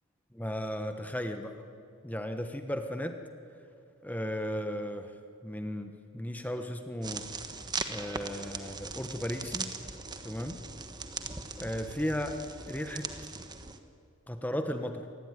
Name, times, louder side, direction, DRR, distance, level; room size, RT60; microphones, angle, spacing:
voice 1, 0.3-1.6 2.0-3.2 4.0-5.1 5.4-7.3 7.9-9.7 10.2-10.6 11.6-12.4 12.7-13.1 14.3-15.0, equal, 5° left, 6 dB, 1.2 m, -35 dB
sound 1, 7.0-13.8, right 4 dB, 20° right, 1.3 m, -40 dB
27.0 x 20.0 x 9.8 m, 2.5 s
head